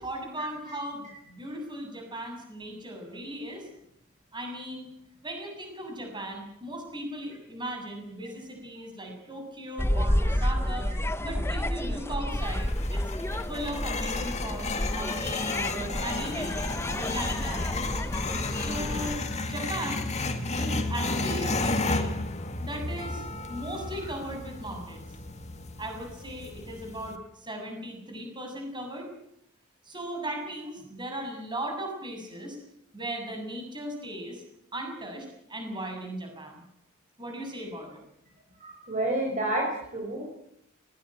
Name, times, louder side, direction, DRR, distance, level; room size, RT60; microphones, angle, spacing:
voice 1, 0.0-3.7 4.3-4.9 5.2-10.9 11.2-13.1 13.5-16.6 16.9-17.9 18.5-20.0 20.5-22.1 22.6-25.1 25.8-29.1 29.8-32.6 32.9-34.4 34.7-36.6 37.2-38.0, right 1 dB, 25° right, 3 dB, 7.1 m, -37 dB
sound 1, 9.8-19.2, left 1 dB, 10° left, 0.9 m, -30 dB
sound 2, 12.3-27.2, left 3 dB, 35° left, 2.0 m, -33 dB
voice 2, 38.6-40.5, right 1 dB, 40° right, -1 dB, 5.5 m, -30 dB
19.5 x 19.0 x 9.0 m, 0.76 s
head